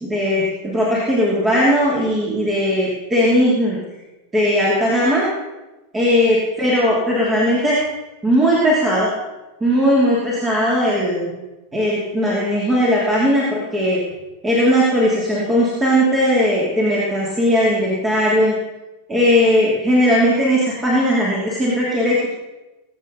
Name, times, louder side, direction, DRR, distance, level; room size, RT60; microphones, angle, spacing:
voice 1, 0.0-3.8 4.3-5.3 5.9-7.8 8.2-9.1 9.6-11.3 11.7-14.0 14.4-18.5 19.1-22.3, equal, 15° right, -5 dB, 2.9 m, -18 dB
20.5 x 8.5 x 4.0 m, 1.1 s
figure-of-eight pair, 90°, 0 cm